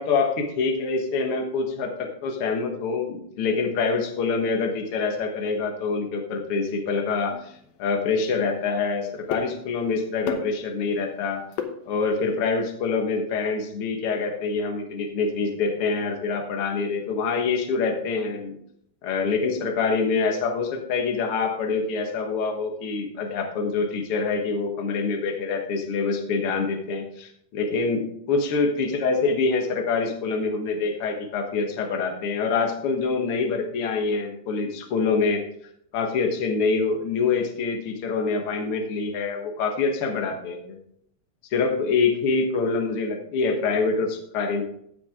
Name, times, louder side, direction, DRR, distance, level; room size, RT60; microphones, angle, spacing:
voice 1, 0.0-0.3 0.6-7.5 7.8-11.4 11.9-18.6 19.0-35.4 35.9-40.8 41.5-44.6, left 4 dB, 55° left, 3 dB, 2.1 m, -25 dB
sound 1, 7.3-12.4, left 7 dB, 80° left, 2.3 m, -38 dB
16.0 x 6.1 x 3.6 m, 0.70 s
omnidirectional pair, 3.4 m